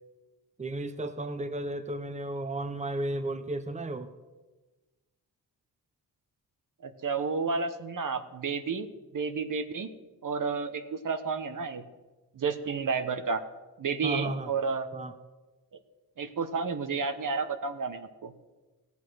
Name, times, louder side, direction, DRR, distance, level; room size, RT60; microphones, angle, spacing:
voice 1, 0.6-4.1 14.0-14.5 14.9-15.1, right 1 dB, 20° right, 9 dB, 1.0 m, -34 dB
voice 2, 6.8-8.9 9.1-9.9 10.2-11.8 12.3-13.4 13.8-14.9 16.2-18.3, right 5 dB, 60° right, 8 dB, 1.2 m, -31 dB
16.5 x 8.5 x 6.3 m, 1.2 s
cardioid pair, 90°, 37 cm